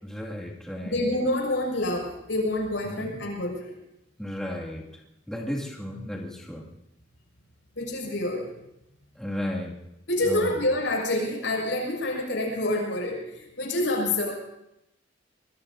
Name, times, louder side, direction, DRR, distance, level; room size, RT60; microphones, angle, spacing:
voice 1, 0.0-1.0 2.8-3.2 4.2-4.9 5.3-6.7 9.2-9.8 10.2-10.6, left 1 dB, 5° left, -4 dB, 2.2 m, -34 dB
voice 2, 0.9-3.8 7.8-8.5 10.1-14.3, left 1 dB, 80° left, 0 dB, 6.2 m, -27 dB
24.0 x 22.5 x 2.7 m, 0.87 s
head